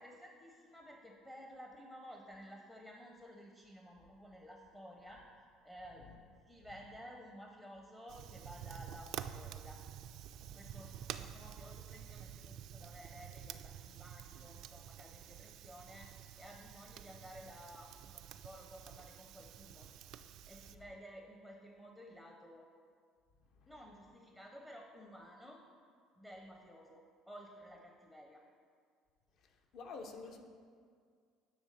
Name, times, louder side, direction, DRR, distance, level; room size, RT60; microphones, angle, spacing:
voice 1, 0.0-5.3 5.6-6.1 6.4-9.8 10.5-19.9 20.4-22.7 23.7-25.6 26.2-28.4, equal, 10° left, 1 dB, 0.7 m, -54 dB
Fire, 8.1-20.8, right 10 dB, 55° right, 0.3 m, -49 dB
voice 2, 10.5-11.1 23.6-23.7 29.4-30.5, left 4 dB, 50° left, 4 dB, 0.8 m, -51 dB
10.5 x 3.5 x 6.6 m, 2.1 s
cardioid pair, 155°, 0 cm